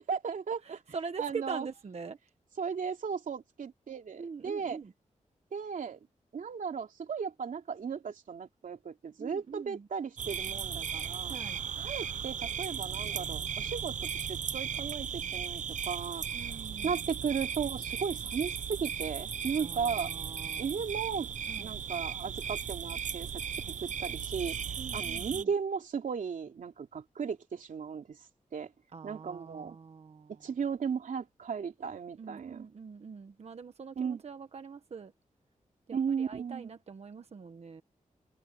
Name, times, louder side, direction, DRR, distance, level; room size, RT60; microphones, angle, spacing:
voice 1, 0.1-0.8 1.2-1.7 2.6-4.8 5.5-6.0 6.3-11.4 11.8-16.6 16.8-20.1 20.6-21.3 21.6-23.4 23.7-24.6 24.9-28.2 28.5-28.7 29.0-29.8 30.4-32.7 34.0-34.2 35.9-36.7, right 6 dB, 85° right, 3.0 m, -36 dB
voice 2, 0.6-2.2 4.2-4.9 9.2-9.9 11.3-11.6 16.3-17.0 19.6-20.8 21.5-21.7 24.8-25.5 28.9-30.4 32.2-35.1 35.9-37.8, right 5 dB, 55° right, 1.2 m, -43 dB
sound 1, 10.2-25.4, right 7 dB, 70° right, 0.7 m, -36 dB
wide cardioid pair, 150°, 13 cm